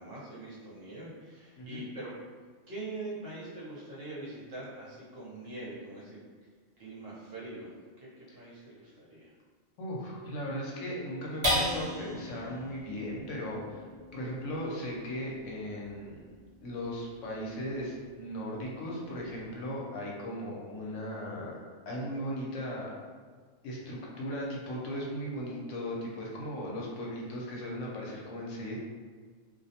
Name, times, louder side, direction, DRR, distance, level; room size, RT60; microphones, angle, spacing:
voice 1, 0.0-2.1 2.7-6.2 6.8-7.7 8.0-9.3, right 2 dB, 60° right, -7 dB, 0.9 m, -43 dB
voice 2, 9.8-13.8 14.1-16.2 16.6-21.5 21.9-22.9 23.6-28.8, equal, 80° left, -3 dB, 0.9 m, -37 dB
sound 1, 11.4-18.1 18.6-18.7 19.1-19.6, equal, 30° right, 0.6 m, -37 dB
2.4 x 2.0 x 2.7 m, 1.6 s
omnidirectional pair, 1.3 m